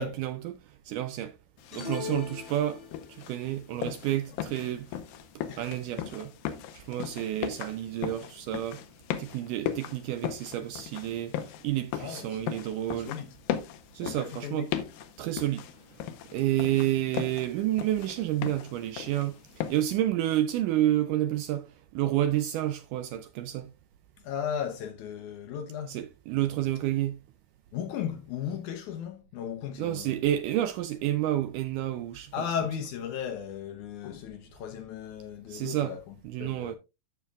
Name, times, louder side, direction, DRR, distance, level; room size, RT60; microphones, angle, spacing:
voice 1, 0.0-1.4 1.7-2.8 3.1-5.0 5.6-6.3 6.7-8.8 9.2-11.3 11.6-13.1 13.9-14.7 15.2-15.7 16.3-19.4 19.7-23.7 25.9-27.2 29.8-32.3 35.5-35.9 36.3-36.8, right 13 dB, 80° right, 1.9 m, -30 dB
sound 1, 1.6-20.0, left 10 dB, 90° left, 2.7 m, -38 dB
sound 2, 1.7-3.3, left 5 dB, 25° left, 1.2 m, -39 dB
voice 2, 12.0-12.4 13.0-13.4 13.9-14.9 24.2-26.0 27.7-30.2 32.3-36.8, left 8 dB, 70° left, 2.0 m, -36 dB
13.5 x 5.8 x 2.3 m
omnidirectional pair, 4.2 m